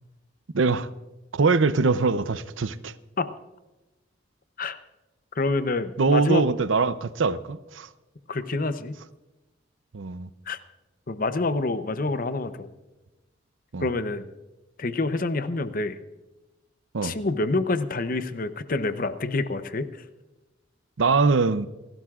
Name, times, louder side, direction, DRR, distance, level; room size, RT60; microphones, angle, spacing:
voice 1, 0.5-0.9 1.3-2.9 6.0-7.9 9.9-10.3 13.7-13.9 16.9-17.2 21.0-21.7, right 4 dB, 85° right, 0.6 m, -22 dB
voice 2, 5.4-6.5 8.3-9.0 10.5-10.6 11.1-12.7 13.8-14.3 14.8-16.0 17.0-20.0, left 3 dB, 45° left, 0.7 m, -27 dB
28.5 x 12.0 x 2.4 m
head